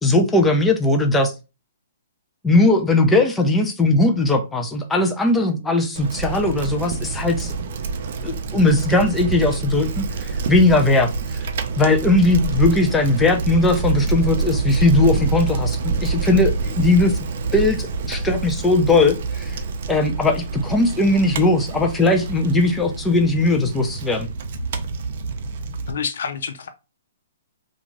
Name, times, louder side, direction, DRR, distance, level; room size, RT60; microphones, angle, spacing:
voice 1, 0.0-1.3 2.4-7.5 8.2-11.1 11.8-17.2 17.5-19.6 19.9-24.3, left 2 dB, 10° left, 0.5 m, -19 dB
Bicycle, 6.0-25.9, right 4 dB, 55° right, 0.5 m, -27 dB
voice 2, 25.9-26.7, left 6 dB, 70° left, 0.4 m, -28 dB
2.4 x 2.4 x 3.0 m
hypercardioid pair, 135°, 0 cm